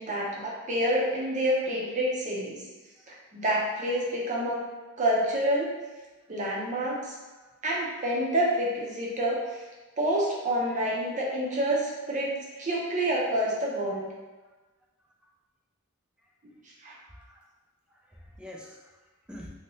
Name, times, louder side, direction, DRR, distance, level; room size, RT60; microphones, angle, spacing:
voice 1, 0.0-2.6 3.3-4.6 5.0-5.7 6.3-7.1 7.6-9.6 10.0-14.1 16.8-17.0, right 1 dB, 35° right, -4 dB, 0.6 m, -28 dB
voice 2, 17.1-17.5 17.9-19.5, left 1 dB, 5° right, -2 dB, 0.3 m, -47 dB
2.8 x 2.7 x 3.0 m, 1.2 s
head